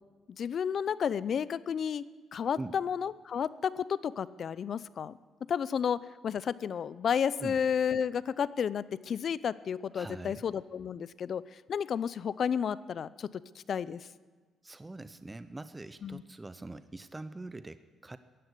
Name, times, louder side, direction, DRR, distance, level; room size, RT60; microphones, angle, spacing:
voice 1, 0.4-2.0 2.3-5.2 5.5-11.4 11.7-13.3 13.7-14.0 16.0-16.2, left 7 dB, 55° left, 18 dB, 0.5 m, -32 dB
voice 2, 9.9-10.4 14.6-18.2, right 2 dB, 15° right, 12 dB, 0.6 m, -43 dB
15.5 x 11.0 x 8.1 m, 1.4 s
cardioid pair, 90°, 0 cm